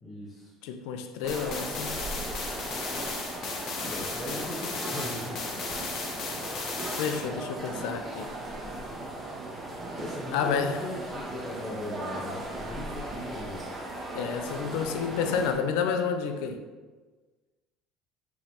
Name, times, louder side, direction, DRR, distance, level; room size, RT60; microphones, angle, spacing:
voice 1, 0.0-0.5 3.8-5.5 9.9-13.7, left 2 dB, 20° left, 1.1 m, -38 dB
voice 2, 0.6-2.0 7.0-8.3 10.3-10.8 14.1-16.6, left 6 dB, 80° left, 0.4 m, -30 dB
sound 1, 1.2-15.5, right 2 dB, 30° right, 1.1 m, -37 dB
sound 2, 1.3-7.3, left 4 dB, 60° left, 1.0 m, -36 dB
5.8 x 3.1 x 2.9 m
supercardioid pair, 95°, 0 cm